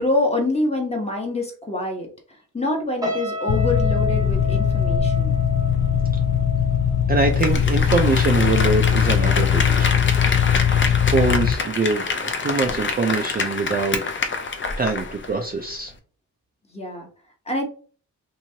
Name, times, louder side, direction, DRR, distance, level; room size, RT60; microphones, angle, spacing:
voice 1, 0.0-5.3 16.7-17.1 17.5-17.6, left 2 dB, 20° left, 2 dB, 1.0 m, -26 dB
sound 1, 3.0-8.3 8.6-8.9, left 1 dB, 10° right, 0.9 m, -31 dB
sound 2, 3.5-11.5, left 8 dB, 90° left, 0.5 m, -20 dB
voice 2, 7.1-10.0 10.6-10.7 11.0-14.3 14.8-15.9, right 4 dB, 30° right, 3 dB, 0.4 m, -24 dB
Applause, 7.2-15.4 15.7-15.8, left 4 dB, 35° left, 0.6 m, -26 dB
3.0 x 2.6 x 2.7 m, 0.41 s
cardioid pair, 85°, 35 cm